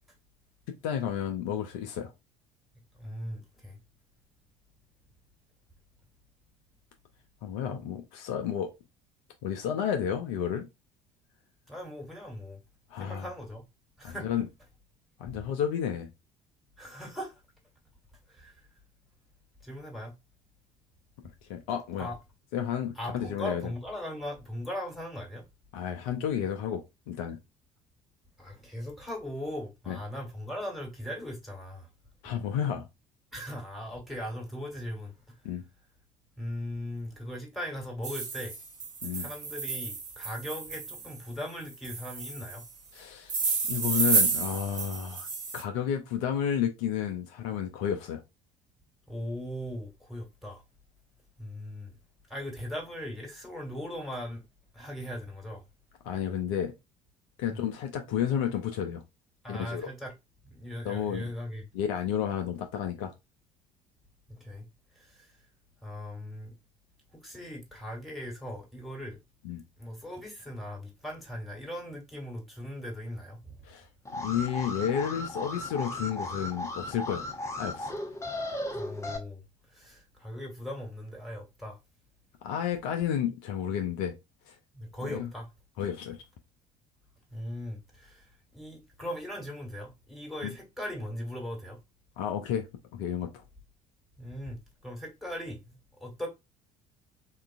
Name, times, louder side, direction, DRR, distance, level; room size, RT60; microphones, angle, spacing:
voice 1, 0.7-2.1 7.4-8.7 9.4-10.7 12.9-13.3 14.0-14.5 15.2-16.1 21.5-22.1 22.5-23.7 25.7-27.4 29.9-30.0 32.2-32.9 35.4-35.6 39.0-39.3 42.9-43.4 43.7-45.3 45.5-48.2 56.0-56.7 57.4-59.0 59.5-59.9 60.8-61.3 61.7-63.1 69.4-69.6 73.6-73.9 74.1-77.2 77.6-77.9 82.4-84.1 84.5-84.6 85.0-85.3 85.8-86.2 90.4-90.5 92.2-92.7 92.9-93.4, left 9 dB, 60° left, 0.5 m, -31 dB
voice 2, 3.0-3.8 11.7-12.6 13.0-13.6 14.0-14.3 15.3-15.4 16.8-17.4 18.3-18.6 19.6-20.1 22.0-22.2 23.0-25.4 28.4-31.9 33.3-35.3 36.4-38.5 39.1-42.6 49.1-50.6 51.4-51.9 52.3-54.4 54.7-55.6 57.5-57.6 59.4-60.1 60.4-61.6 64.3-64.6 64.9-65.3 65.8-66.5 67.1-69.2 69.8-73.5 78.7-79.4 79.7-81.8 84.7-85.5 87.3-91.8 94.2-96.3, equal, ahead, 1.4 m, -39 dB
sound 1, 38.0-41.2 41.8-42.6 43.3-45.6, right 4 dB, 40° right, 0.9 m, -31 dB
Alarm, 74.0-79.2, left 1 dB, 15° left, 0.7 m, -36 dB
3.6 x 2.4 x 2.3 m
figure-of-eight pair, 55°, 19 cm